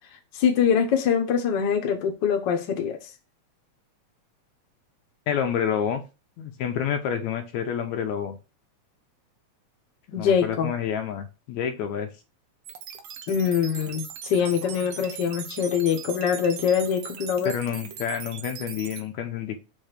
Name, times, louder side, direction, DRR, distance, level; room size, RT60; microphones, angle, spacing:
voice 1, 0.3-3.0 10.1-10.7 13.3-17.5, left 7 dB, 60° left, 1.2 m, -24 dB
voice 2, 5.3-6.0 6.4-8.4 10.2-12.1 17.4-19.6, left 8 dB, 80° left, 2.1 m, -28 dB
sound 1, 12.6-19.0, right 8 dB, 75° right, 1.2 m, -40 dB
7.6 x 2.7 x 5.0 m
omnidirectional pair, 3.3 m